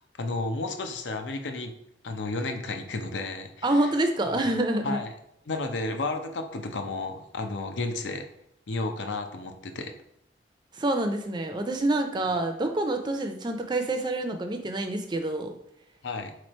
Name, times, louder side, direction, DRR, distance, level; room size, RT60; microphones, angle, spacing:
voice 1, 0.2-1.7 2.0-3.7 4.8-5.1 5.5-8.2 8.7-9.9 16.0-16.3, left 3 dB, 80° left, 6 dB, 0.6 m, -32 dB
voice 2, 3.6-5.0 10.7-15.5, right 1 dB, 25° right, 6 dB, 0.4 m, -27 dB
3.8 x 3.1 x 4.2 m, 0.79 s
head